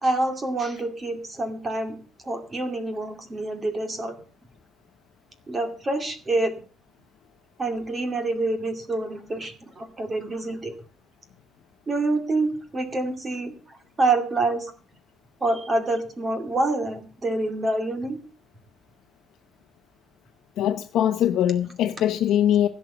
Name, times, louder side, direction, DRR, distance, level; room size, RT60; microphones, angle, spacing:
voice 1, 0.0-2.0 2.2-4.2 5.5-6.5 7.6-10.7 11.9-14.7 15.4-18.2, right 2 dB, 20° right, 2.4 m, -27 dB
voice 2, 20.6-22.7, left 11 dB, 60° left, 0.8 m, -22 dB
16.5 x 6.3 x 8.1 m
cardioid pair, 170°, 0 cm